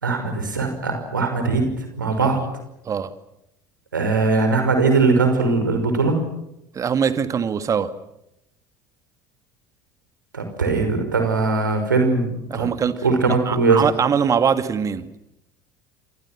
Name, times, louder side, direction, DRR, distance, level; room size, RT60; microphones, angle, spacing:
voice 1, 0.0-2.4 3.9-6.2 10.3-12.7 13.0-13.8, right 3 dB, 80° right, 6 dB, 5.9 m, -20 dB
voice 2, 6.7-7.9 12.5-15.1, right 7 dB, 30° right, 11 dB, 2.2 m, -22 dB
29.5 x 26.5 x 6.1 m, 0.84 s
figure-of-eight pair, 65°, 10 cm